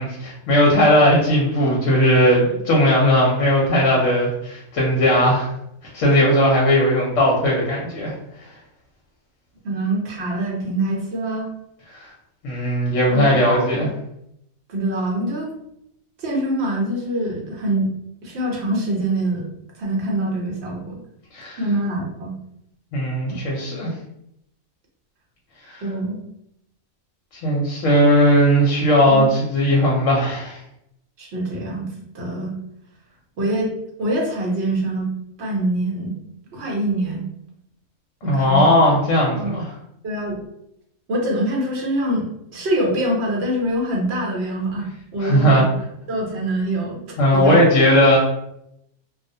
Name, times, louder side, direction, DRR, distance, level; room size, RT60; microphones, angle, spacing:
voice 1, 0.0-5.5 5.9-8.1 11.9-12.1 12.4-13.9 21.3-21.6 22.9-23.9 25.6-25.8 27.3-30.6 38.2-39.7 45.2-45.6 47.2-48.2, equal, 70° left, -3 dB, 0.9 m, -17 dB
voice 2, 9.6-11.5 13.1-13.9 14.7-15.5 16.2-17.9 18.2-19.4 19.8-21.0 21.6-22.3 25.8-26.2 29.0-29.3 31.2-31.9 32.1-32.5 33.4-33.7 34.0-35.1 35.4-36.2 36.5-37.3 38.2-38.6 39.3-39.5 40.0-40.4 41.1-44.9 45.1-45.7 46.1-47.0 47.3-47.6, right 1 dB, 55° right, -1 dB, 0.9 m, -24 dB
2.4 x 2.0 x 2.6 m, 0.77 s
omnidirectional pair, 1.5 m